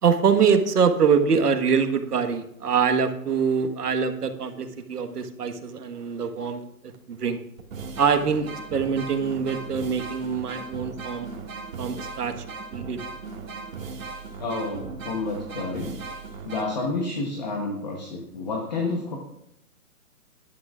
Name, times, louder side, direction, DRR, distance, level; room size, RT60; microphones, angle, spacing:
voice 1, 0.0-6.6 7.1-7.4 8.0-11.3 11.8-12.3 12.7-13.0, right 6 dB, 90° right, 8 dB, 1.5 m, -24 dB
sound 1, 6.9-7.0 7.6-16.6, right 4 dB, 60° right, 2.1 m, -37 dB
voice 2, 14.4-16.0 16.4-19.2, left 3 dB, 30° left, 0 dB, 1.1 m, -30 dB
17.5 x 11.0 x 2.5 m, 0.79 s
hypercardioid pair, 175°, 46 cm